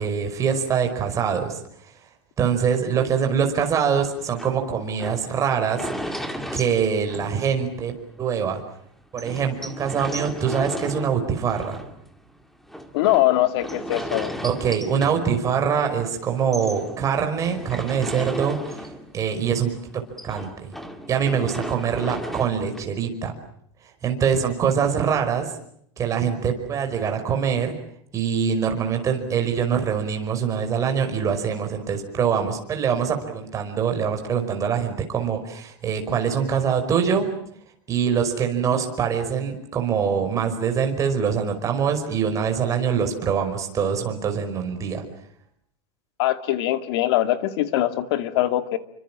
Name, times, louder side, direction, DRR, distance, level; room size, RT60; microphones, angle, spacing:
voice 1, 0.0-1.9 2.4-6.2 6.5-8.6 9.1-11.8 14.4-19.8 20.2-20.7 21.1-23.3 23.8-25.5 26.0-27.7 28.1-37.3 37.9-45.0, right 7 dB, 25° right, 4 dB, 5.2 m, -24 dB
sound 1, 2.9-7.9 8.3-8.4 8.6-8.7 9.2-16.0 16.3-19.3 19.6-22.8, equal, ahead, 2.2 m, -36 dB
voice 2, 12.9-14.3 46.2-48.8, left 14 dB, 70° left, 10 dB, 2.4 m, -22 dB
29.0 x 24.5 x 7.5 m, 0.69 s
supercardioid pair, 160°, 14 cm